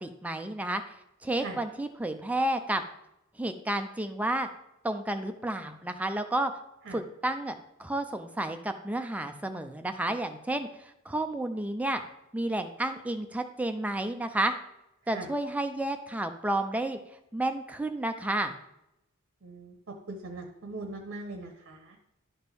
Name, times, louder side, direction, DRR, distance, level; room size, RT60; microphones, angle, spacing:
voice 1, 0.0-0.8 1.2-2.8 3.4-4.5 4.8-6.5 6.9-12.0 12.3-14.5 15.1-17.0 17.3-18.6, right 1 dB, 5° right, 7 dB, 0.5 m, -31 dB
voice 2, 19.4-19.7 20.1-21.9, right 2 dB, 55° right, 3 dB, 0.9 m, -40 dB
11.5 x 4.3 x 3.5 m, 0.86 s
head